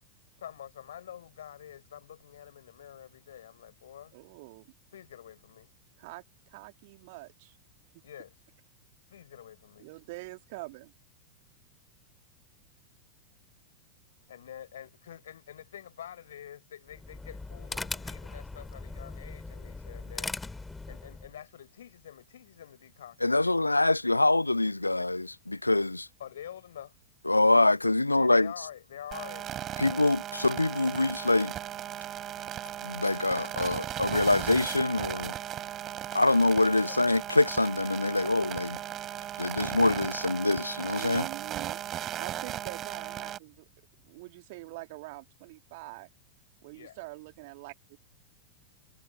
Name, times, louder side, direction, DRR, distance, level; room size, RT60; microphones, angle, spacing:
voice 1, 0.4-4.2 4.9-5.7 8.0-8.5 9.1-9.9 14.3-20.4 20.9-23.3 26.2-27.0 28.1-30.0 30.3-30.4 36.8-37.0 46.7-47.0, left 10 dB, 65° left, 5.9 m, -47 dB
voice 2, 4.1-4.7 6.0-7.6 9.8-10.9 41.0-41.8 42.2-43.6 44.1-46.1 46.6-48.0, right 23 dB, 50° right, 2.5 m, -44 dB
sound 1, 16.9-21.3, left 3 dB, 10° left, 3.1 m, -39 dB
voice 3, 23.2-26.1 27.3-28.5 29.8-31.5 32.8-35.3 36.1-38.8 39.4-41.3, left 2 dB, 85° left, 0.8 m, -25 dB
sound 2, 29.1-43.4, right 11 dB, 30° right, 3.0 m, -37 dB
figure-of-eight pair, 90°, 0 cm